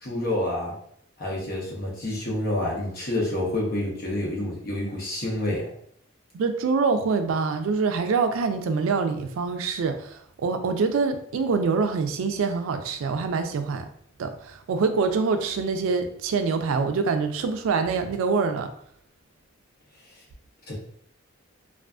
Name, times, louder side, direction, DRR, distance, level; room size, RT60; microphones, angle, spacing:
voice 1, 0.0-0.7 1.2-5.7 20.7-20.8, left 1 dB, 50° left, -3 dB, 0.8 m, -28 dB
voice 2, 6.3-13.9 14.2-18.7, right 4 dB, 80° right, 8 dB, 0.3 m, -25 dB
2.4 x 2.4 x 2.3 m, 0.65 s
head